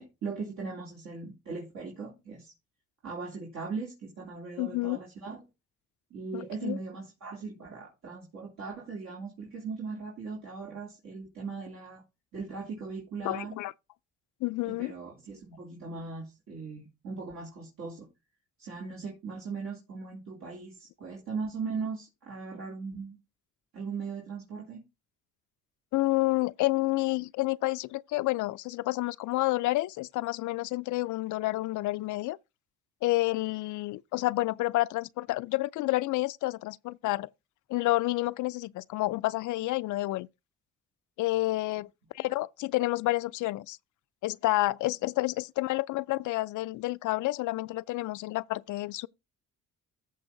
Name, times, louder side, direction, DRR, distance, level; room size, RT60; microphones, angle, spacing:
voice 1, 0.0-2.5 3.0-5.4 6.1-12.0 12.3-13.5 14.7-18.1 18.6-23.2 23.7-24.8, right 4 dB, 70° right, 3.3 m, -39 dB
voice 2, 4.6-5.0 6.3-6.8 13.2-13.7 14.4-14.9 25.9-32.4 33.0-37.3 37.7-40.3 41.2-41.9 42.1-43.8 44.2-49.1, left 19 dB, 75° left, 0.4 m, -29 dB
14.0 x 5.3 x 3.8 m
cardioid pair, 90°, 30 cm